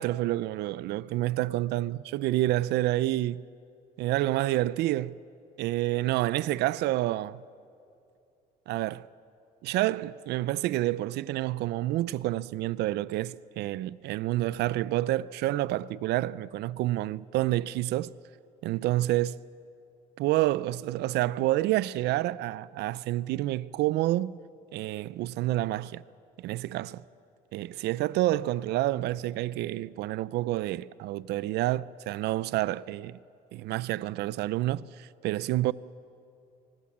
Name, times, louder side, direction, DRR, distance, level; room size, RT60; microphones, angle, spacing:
voice 1, 0.0-3.4 4.0-5.2 5.6-7.4 8.7-9.1 9.6-18.1 18.6-19.4 20.2-24.4 24.7-26.0 26.4-27.0 27.5-33.2 33.5-35.7, right 16 dB, 80° right, 0.5 m, -28 dB
24.5 x 20.0 x 7.3 m
cardioid pair, 110°, 17 cm